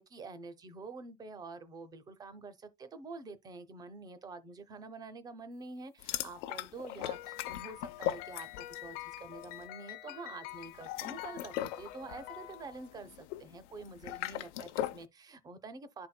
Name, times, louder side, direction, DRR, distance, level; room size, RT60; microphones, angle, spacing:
voice 1, 0.0-16.1, right 3 dB, 10° right, 0.4 m, -47 dB
sound 1, 6.0-8.9 9.2-9.5 10.7-15.1, left 13 dB, 90° left, 0.9 m, -39 dB
sound 2, 7.1-13.1, left 15 dB, 60° left, 0.8 m, -47 dB
11.5 x 4.3 x 2.2 m
cardioid pair, 170°, 35 cm